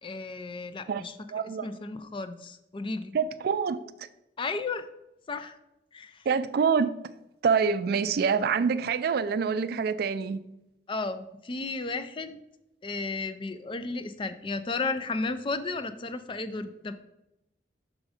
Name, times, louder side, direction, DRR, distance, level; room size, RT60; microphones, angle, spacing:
voice 1, 0.0-1.1 1.6-3.2 4.4-4.9 5.3-5.6 5.9-6.2 10.9-12.4 12.8-17.0, left 3 dB, 30° left, 0.4 m, -33 dB
voice 2, 1.3-1.8 3.1-4.1 6.3-7.0 7.4-10.4, right 6 dB, 60° right, 0.3 m, -26 dB
6.2 x 3.7 x 4.9 m
head